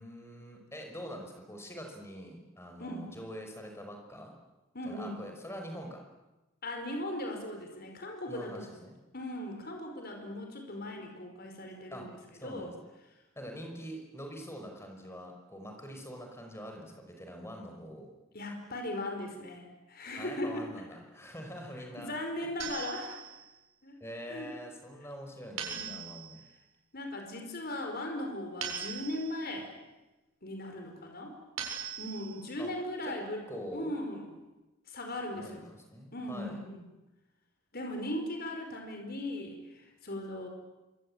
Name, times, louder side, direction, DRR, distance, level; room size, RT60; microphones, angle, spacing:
voice 1, 0.0-4.3 4.8-6.0 8.3-9.0 11.9-12.1 12.4-12.8 13.4-18.1 20.2-22.1 24.0-26.4 32.6-32.7 33.0-33.1 33.5-33.9 35.4-36.6, equal, 10° left, 3 dB, 5.3 m, -44 dB
voice 2, 2.8-3.1 4.7-5.1 6.6-8.6 9.1-12.2 12.4-12.7 18.3-20.7 22.0-23.2 23.8-24.0 24.3-24.5 25.7-26.0 26.9-29.7 30.4-31.4 32.0-33.5 33.7-34.2 34.9-35.7 36.1-36.9 37.7-40.5, left 1 dB, 45° left, 3 dB, 5.2 m, -38 dB
sound 1, 22.6-23.5 25.6-26.4 28.6-29.5 31.6-32.5, right 7 dB, 70° right, 7.6 m, -40 dB
27.0 x 25.0 x 8.9 m, 1.1 s
head